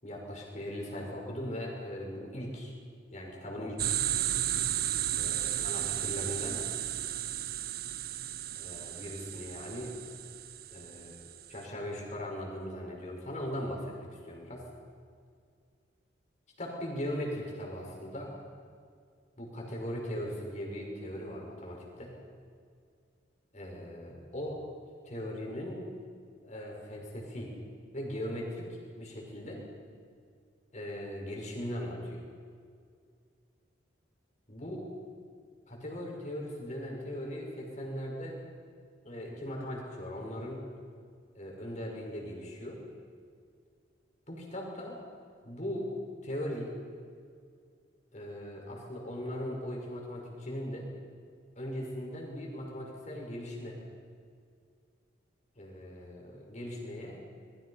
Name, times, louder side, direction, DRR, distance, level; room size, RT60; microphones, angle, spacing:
voice 1, 0.0-2.7 3.1-4.0 5.1-6.7 8.5-9.9 10.7-11.1 11.5-14.6 16.6-18.3 19.4-22.1 23.5-24.6 25.0-25.8 26.4-27.5 27.9-29.6 30.7-32.2 34.5-34.8 35.7-38.4 39.0-40.6 41.3-42.8 44.3-45.0 45.4-45.9 46.2-46.7 48.1-50.9 51.6-53.8 55.6-57.2, equal, 40° left, -1 dB, 5.9 m, -39 dB
sound 1, 3.8-11.5, right 12 dB, 50° right, 0.7 m, -34 dB
26.5 x 22.0 x 5.7 m, 2.2 s
head